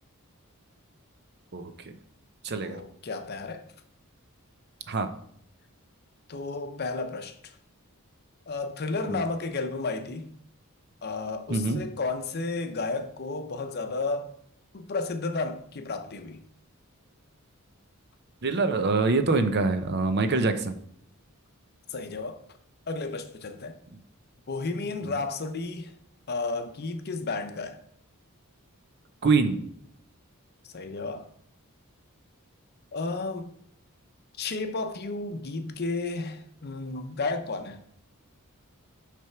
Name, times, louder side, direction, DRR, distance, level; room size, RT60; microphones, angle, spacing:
voice 1, 1.5-1.9 2.4-2.8 4.9-5.1 9.1-9.2 11.5-11.9 18.4-20.7 25.0-25.2 29.2-29.6, right 3 dB, 50° right, 0.6 m, -25 dB
voice 2, 2.6-3.6 6.3-7.6 8.5-10.3 11.0-14.3 14.7-16.4 21.9-22.4 22.9-23.8 24.5-25.9 26.3-27.8 30.7-31.2 32.9-33.5 34.4-37.8, left 3 dB, 45° left, 0.6 m, -32 dB
6.3 x 3.4 x 5.7 m
head